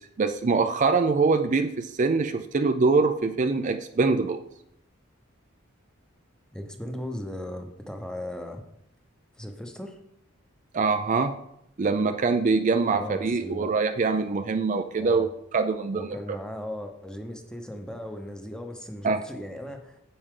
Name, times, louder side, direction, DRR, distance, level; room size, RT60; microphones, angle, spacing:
voice 1, 0.2-4.4 10.7-11.4 11.8-15.3 15.5-16.4 19.0-19.2, right 4 dB, 40° right, 8 dB, 0.4 m, -24 dB
voice 2, 6.5-8.6 9.4-10.0 12.9-13.7 15.0-15.3 15.9-20.0, left 1 dB, 5° left, 5 dB, 0.9 m, -37 dB
9.6 x 7.9 x 3.8 m, 0.78 s
head